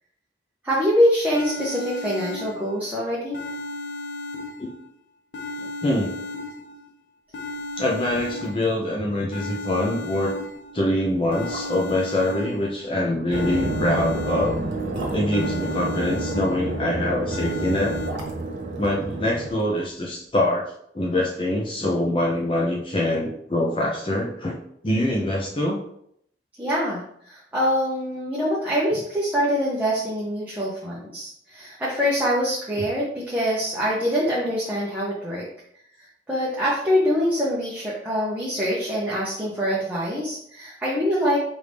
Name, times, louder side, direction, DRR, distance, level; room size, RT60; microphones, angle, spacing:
voice 1, 0.6-3.4 26.6-35.4 36.3-41.4, equal, 10° right, -8 dB, 0.7 m, -24 dB
sound 1, 0.9-1.0 1.3-2.9 3.3-4.9 5.3-6.9 7.3-8.9 9.3-10.9 11.3-12.9 13.3-14.9 15.3-16.9 17.3-18.1, left 2 dB, 75° left, 0.4 m, -35 dB
voice 2, 5.6-6.1 7.8-10.3 10.7-14.6 15.1-18.0 18.8-24.6 24.8-25.8, left 1 dB, 30° left, -2 dB, 0.6 m, -24 dB
sound 2, 7.7-7.8 8.0-8.7 9.0-9.1 9.5-9.7 10.4-10.5 11.1-12.0 13.6-16.2 17.5-19.7 20.0-20.1, right 1 dB, 80° right, 1.0 m, -39 dB
sound 3, 13.3-19.5, right 2 dB, 45° right, 0.5 m, -29 dB
4.8 x 2.6 x 3.4 m, 0.71 s
head